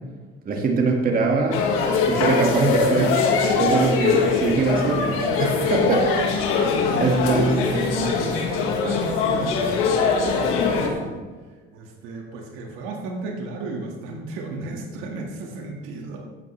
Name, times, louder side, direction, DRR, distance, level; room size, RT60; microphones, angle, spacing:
voice 1, 0.5-1.7 2.1-3.2 3.6-6.0 7.0-8.1, right 4 dB, 45° right, 1 dB, 1.9 m, -22 dB
sound 1, 1.5-10.9, left 5 dB, 85° left, 1.7 m, -22 dB
voice 2, 6.7-7.6 8.0-11.2 11.7-16.2, right 3 dB, 80° right, 1 dB, 1.8 m, -34 dB
13.5 x 8.5 x 3.3 m, 1.3 s
cardioid pair, 105°, 21 cm